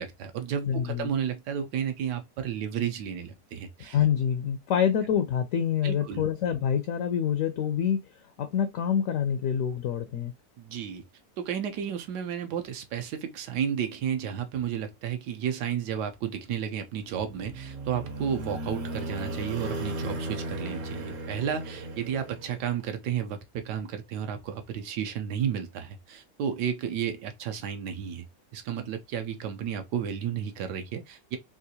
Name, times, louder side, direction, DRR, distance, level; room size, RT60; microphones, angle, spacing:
voice 1, 0.0-4.0 5.8-6.3 10.6-11.0 11.4-28.3 28.5-31.4, right 8 dB, 80° right, 1.2 m, -32 dB
voice 2, 0.6-1.1 3.8-8.0 8.4-10.3, left 8 dB, 70° left, 0.8 m, -26 dB
sound 1, 17.1-22.9, right 1 dB, 55° right, 1.0 m, -36 dB
3.7 x 2.4 x 2.7 m
omnidirectional pair, 1.8 m